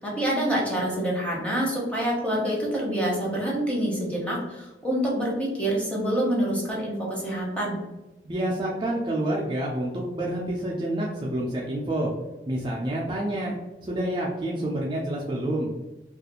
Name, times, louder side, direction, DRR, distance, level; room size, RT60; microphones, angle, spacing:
voice 1, 0.0-7.8, right 1 dB, 5° left, -4 dB, 0.7 m, -26 dB
voice 2, 8.2-12.1 12.5-13.6 13.8-15.7, right 1 dB, 25° right, -3 dB, 0.3 m, -28 dB
2.4 x 2.3 x 2.8 m, 1.1 s
head